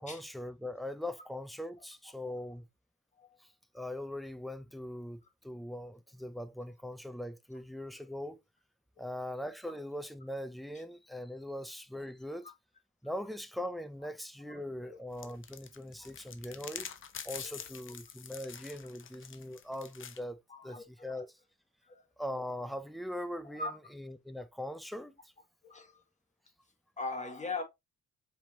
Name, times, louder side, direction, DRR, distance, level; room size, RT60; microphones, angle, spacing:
voice 1, 0.0-2.7 3.4-8.4 9.0-12.5 13.0-16.9 17.2-21.4 22.2-25.3, left 1 dB, ahead, 0.6 m, -41 dB
sound 1, 15.2-20.2, left 8 dB, 40° left, 0.7 m, -45 dB
voice 2, 20.5-21.2 21.8-22.0 23.5-23.7 25.6-26.0 27.0-27.6, left 3 dB, 25° left, 1.5 m, -40 dB
4.7 x 3.5 x 2.7 m
cardioid pair, 90°, 30 cm